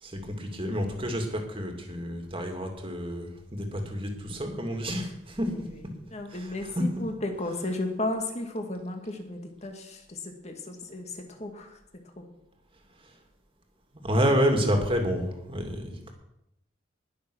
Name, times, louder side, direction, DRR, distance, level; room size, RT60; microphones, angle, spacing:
voice 1, 0.0-5.5 6.3-6.8 14.0-16.1, equal, 30° right, 3 dB, 2.5 m, -29 dB
voice 2, 6.1-11.8, left 1 dB, 35° left, 4 dB, 2.2 m, -34 dB
20.5 x 6.9 x 6.4 m, 0.83 s
head